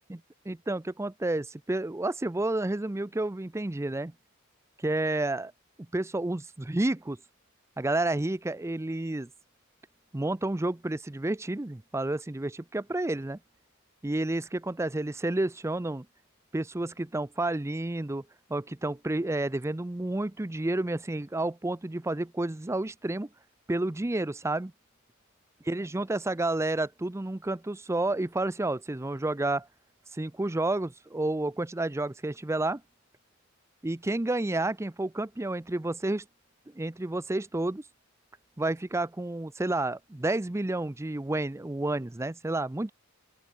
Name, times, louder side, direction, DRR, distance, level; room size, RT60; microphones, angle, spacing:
voice 1, 0.5-4.1 4.8-5.5 5.9-7.2 7.8-9.3 10.1-13.4 14.0-16.1 16.5-18.2 18.5-23.3 23.7-24.7 25.7-29.7 30.1-32.8 33.8-36.2 36.7-37.8 38.6-42.9, right 2 dB, 15° right, 0.5 m, -30 dB
open air
head